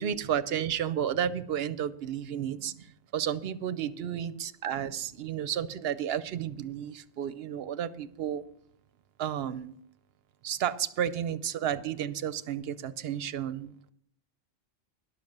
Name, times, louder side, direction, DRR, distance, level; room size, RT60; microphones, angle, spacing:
voice 1, 0.0-8.4 9.2-9.7 10.4-13.9, right 9 dB, 60° right, 15 dB, 0.8 m, -32 dB
11.0 x 6.5 x 7.2 m, 0.70 s
omnidirectional pair, 1.3 m